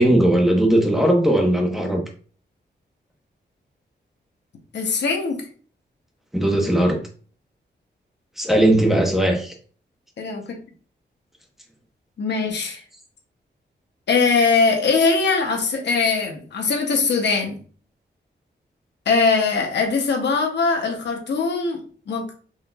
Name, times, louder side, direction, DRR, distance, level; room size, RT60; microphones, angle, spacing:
voice 1, 0.0-2.0 6.3-7.0 8.4-9.5, right 1 dB, ahead, 1 dB, 1.0 m, -18 dB
voice 2, 4.7-5.4 10.2-10.6 12.2-12.8 14.1-17.6 19.1-21.8 22.1-22.3, left 4 dB, 75° left, 2 dB, 0.8 m, -21 dB
4.3 x 2.8 x 2.3 m, 0.42 s
cardioid pair, 90°, 18 cm